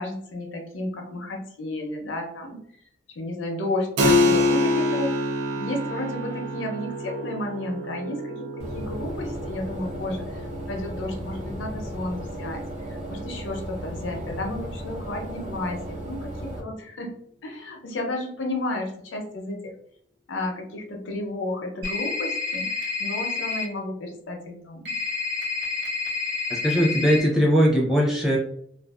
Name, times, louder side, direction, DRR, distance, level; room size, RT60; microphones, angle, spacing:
voice 1, 0.0-2.8 3.1-5.3 5.5-17.1 17.4-19.7 20.3-24.9, left 1 dB, 90° left, 3 dB, 0.6 m, -32 dB
Keyboard (musical), 4.0-14.2, left 1 dB, 85° right, 0.4 m, -27 dB
sound 1, 8.6-16.6, equal, 35° right, 1.0 m, -35 dB
sound 2, 21.8-23.6 24.9-27.2, left 4 dB, 65° right, 1.0 m, -29 dB
voice 2, 26.5-28.4, equal, ahead, -3 dB, 0.5 m, -20 dB
2.5 x 2.4 x 2.3 m, 0.66 s
head